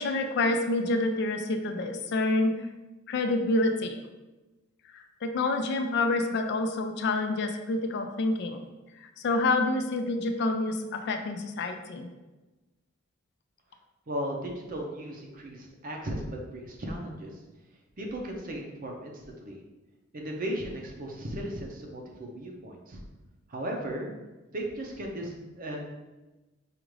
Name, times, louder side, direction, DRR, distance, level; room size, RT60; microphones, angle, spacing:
voice 1, 0.0-2.6 3.1-4.0 4.9-8.6 9.0-12.1, left 2 dB, 55° left, 6 dB, 0.4 m, -28 dB
voice 2, 14.1-17.4 18.0-19.6 20.1-23.0 23.5-24.1 24.5-25.9, right 1 dB, 45° right, 1 dB, 0.6 m, -36 dB
4.9 x 2.5 x 3.1 m, 1.1 s
head